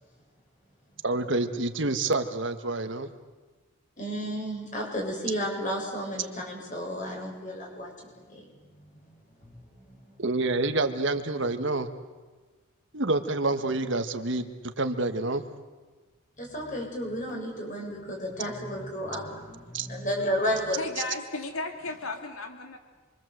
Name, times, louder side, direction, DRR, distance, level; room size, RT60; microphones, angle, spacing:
voice 1, 1.0-3.1 10.2-11.9 12.9-15.5 19.7-19.9, right 2 dB, 60° right, 8 dB, 1.5 m, -28 dB
voice 2, 4.0-10.2 16.4-20.8, equal, 35° left, 0 dB, 7.5 m, -33 dB
voice 3, 20.8-22.8, left 3 dB, 85° left, 5 dB, 2.6 m, -34 dB
27.5 x 23.5 x 7.9 m, 1.3 s
head